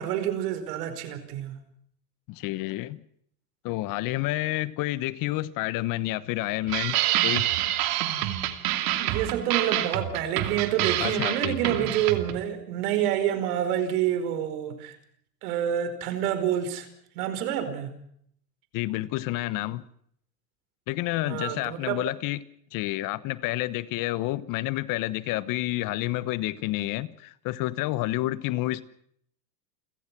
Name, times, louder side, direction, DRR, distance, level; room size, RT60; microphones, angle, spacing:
voice 1, 0.0-1.6 9.0-15.0 15.4-16.9 17.1-18.0 21.3-22.1, right 10 dB, 65° right, 4.9 m, -28 dB
voice 2, 2.3-3.0 3.6-7.5 11.0-11.9 18.7-19.9 20.9-22.4 22.7-28.8, left 17 dB, 40° left, 1.2 m, -29 dB
sound 1, 6.7-12.4, right 14 dB, 50° right, 2.8 m, -27 dB
29.5 x 16.5 x 6.1 m
supercardioid pair, 125°, 49 cm